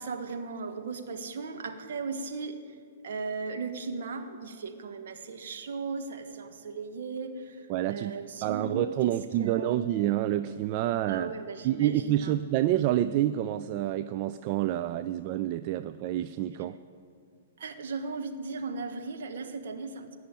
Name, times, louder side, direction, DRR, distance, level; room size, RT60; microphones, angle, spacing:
voice 1, 0.0-2.8 3.0-9.8 11.1-12.3 17.6-20.1, right 4 dB, 55° right, 6 dB, 1.3 m, -37 dB
voice 2, 7.7-8.1 8.4-11.3 11.6-16.8, right 13 dB, 35° right, 12 dB, 0.3 m, -28 dB
17.5 x 6.3 x 9.0 m, 2.2 s
figure-of-eight pair, 110°, 0 cm